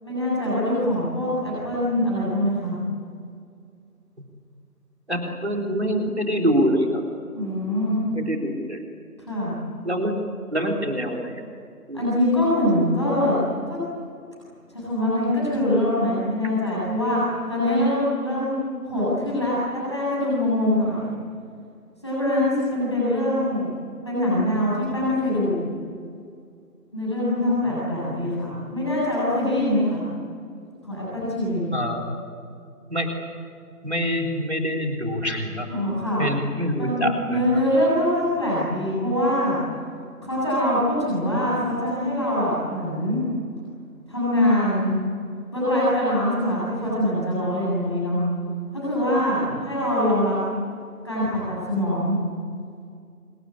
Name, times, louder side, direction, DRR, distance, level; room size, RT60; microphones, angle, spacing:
voice 1, 0.0-2.7 7.3-8.0 9.2-9.5 11.9-13.8 14.7-17.2 17.5-21.1 22.0-23.7 24.0-25.6 26.9-30.0 30.8-31.7 35.7-36.2 36.8-39.6 40.2-43.2 44.1-44.9 45.5-48.2 48.7-50.4 51.0-52.2, left 1 dB, 20° left, -9 dB, 7.9 m, -23 dB
voice 2, 5.1-7.0 8.1-8.8 9.8-10.1 10.5-11.4 11.9-12.1 31.7-32.0 32.9-33.1 33.8-35.7 36.2-37.6 49.5-49.6, equal, 45° right, 2 dB, 3.8 m, -25 dB
26.5 x 22.0 x 9.8 m, 2.3 s
figure-of-eight pair, 175°, 46 cm